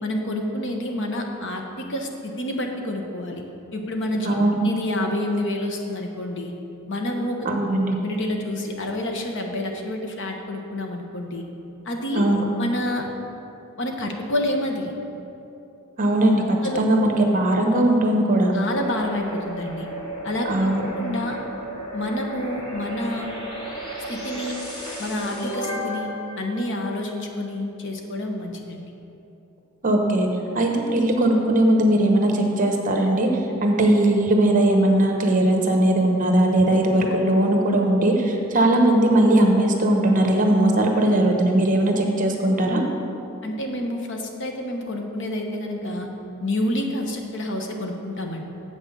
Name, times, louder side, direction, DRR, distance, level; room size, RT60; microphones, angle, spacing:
voice 1, 0.0-3.4 3.7-4.3 4.6-6.5 6.9-7.7 8.0-11.4 11.8-12.2 12.6-13.1 13.8-14.9 16.5-16.8 18.5-19.9 20.2-20.7 21.0-21.4 21.9-23.3 24.1-24.6 25.0-28.9 43.4-46.1 46.4-48.4, left 1 dB, 55° left, 3 dB, 1.0 m, -28 dB
voice 2, 4.2-4.6 7.4-8.0 12.1-12.4 16.0-16.4 16.8-18.5 20.5-20.8 29.8-30.3 30.5-33.3 33.6-42.8, right 1 dB, 35° right, 2 dB, 1.0 m, -19 dB
sound 1, 18.8-27.4, right 1 dB, 20° left, 2.1 m, -34 dB
7.9 x 6.1 x 6.8 m, 2.8 s
head